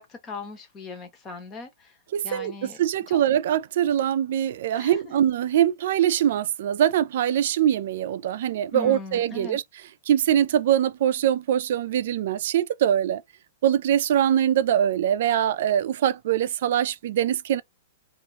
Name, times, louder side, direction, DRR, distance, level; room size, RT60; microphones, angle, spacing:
voice 1, 0.0-2.0 2.2-2.8 3.1-3.2 4.8-5.1 8.7-9.6, left 3 dB, 20° left, 0.9 m, -39 dB
voice 2, 2.1-9.6 10.1-13.2 13.6-17.6, right 10 dB, 60° right, 0.4 m, -23 dB
2.8 x 2.5 x 2.8 m
hypercardioid pair, 160°, 0 cm